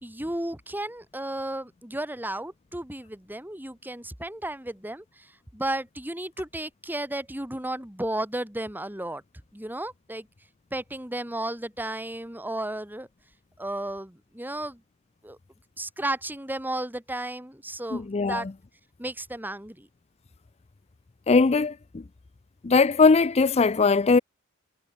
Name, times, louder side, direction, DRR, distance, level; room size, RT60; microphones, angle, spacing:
voice 1, 0.0-9.2 9.5-10.3 10.7-13.1 13.6-14.8 15.2-15.4 15.8-18.5 19.0-19.9, right 1 dB, 10° right, 2.5 m, -33 dB
voice 2, 17.9-18.5 21.3-22.0 22.6-24.2, left 4 dB, 30° left, 0.5 m, -20 dB
head